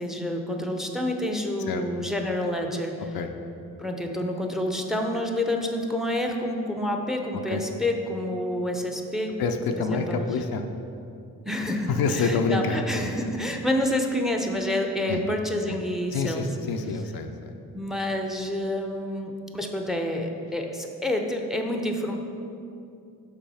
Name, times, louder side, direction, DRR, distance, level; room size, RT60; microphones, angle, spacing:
voice 1, 0.0-3.2 3.8-9.4 9.8-10.3 11.5-16.5 17.7-22.2, left 1 dB, ahead, 3 dB, 0.7 m, -28 dB
voice 2, 9.4-10.6 11.9-13.1 15.1-15.2 15.7-15.8 16.1-17.5, left 4 dB, 70° left, 5 dB, 0.6 m, -27 dB
5.8 x 3.9 x 5.6 m, 2.6 s
supercardioid pair, 55°, 38 cm